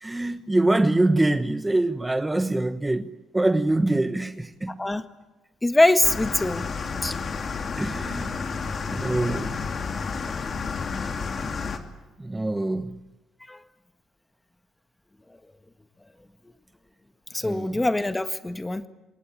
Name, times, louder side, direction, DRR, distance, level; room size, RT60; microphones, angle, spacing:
voice 1, 0.0-4.8 7.8-8.4 8.8-9.6 12.2-12.9 17.4-17.8, right 2 dB, 15° right, 1.2 m, -24 dB
voice 2, 4.7-5.0 5.6-6.7 7.0-7.2 7.9-8.0 13.5-13.6 17.3-18.9, left 2 dB, 15° left, 1.7 m, -23 dB
sound 1, 6.0-11.8, left 5 dB, 45° left, 2.8 m, -31 dB
26.5 x 20.0 x 8.8 m
supercardioid pair, 65°, 0 cm